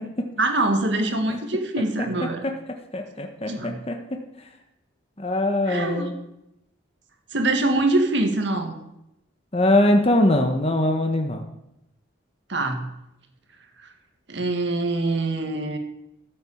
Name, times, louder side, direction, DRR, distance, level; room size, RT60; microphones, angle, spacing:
voice 1, 0.4-2.4 3.5-3.8 5.7-6.1 7.3-8.8 12.5-12.9 13.8-13.9 14.3-15.8, right 2 dB, 60° right, 5 dB, 1.9 m, -24 dB
voice 2, 2.9-4.0 4.4-4.5 5.2-6.1 9.5-11.4, left 1 dB, 30° left, 4 dB, 1.2 m, -22 dB
13.5 x 7.9 x 7.2 m, 0.84 s
head